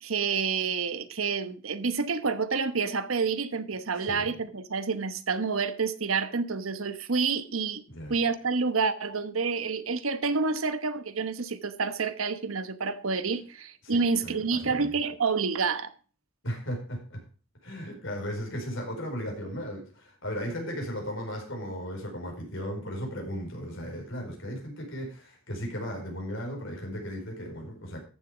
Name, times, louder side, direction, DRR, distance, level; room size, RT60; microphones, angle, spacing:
voice 1, 0.0-7.8 8.1-15.9, right 4 dB, 90° right, 1.1 m, -28 dB
voice 2, 4.0-4.4 7.9-8.1 13.8-14.9 16.4-17.2 17.6-28.0, equal, 65° left, 4.8 m, -36 dB
14.0 x 7.1 x 5.1 m
head